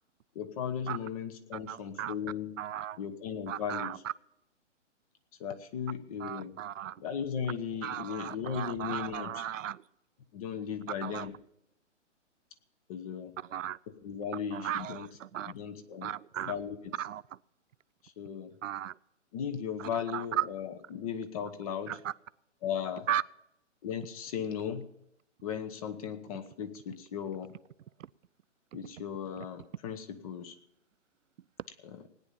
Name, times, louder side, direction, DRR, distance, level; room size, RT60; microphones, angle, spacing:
voice 1, 0.3-2.6 3.0-3.9 5.4-6.6 7.0-9.4 10.3-11.4 12.9-13.3 13.9-15.1 15.4-16.1 16.4-17.0 18.0-18.5 19.3-22.0 22.6-23.1 23.8-24.9 25.4-27.5 28.7-30.6 31.8-32.0, left 7 dB, 30° left, 11 dB, 1.1 m, -37 dB
voice 2, 1.7-2.1 2.6-3.0 3.5-4.0 6.2-7.0 7.8-9.8 11.0-11.3 13.5-13.8 14.5-15.5 16.0-16.5 17.0-17.2 18.6-18.9 19.8-20.4 21.9-22.1 23.1-23.2, right 11 dB, 85° right, 19 dB, 0.6 m, -36 dB
17.5 x 10.0 x 5.5 m, 0.79 s
hypercardioid pair, 160°, 37 cm